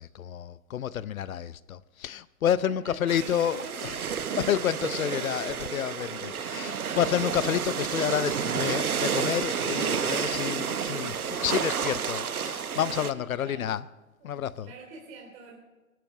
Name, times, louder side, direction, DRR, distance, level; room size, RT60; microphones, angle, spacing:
voice 1, 0.0-4.0 4.3-13.9 14.2-14.7, left 10 dB, 70° left, 0.8 m, -30 dB
voice 2, 2.7-5.8 6.1-6.5 13.0-13.7 14.2-15.6, right 3 dB, 50° right, 3.6 m, -46 dB
sound 1, 3.1-13.1, right 7 dB, 90° right, 0.9 m, -30 dB
24.0 x 12.5 x 4.7 m
hypercardioid pair, 125°, 43 cm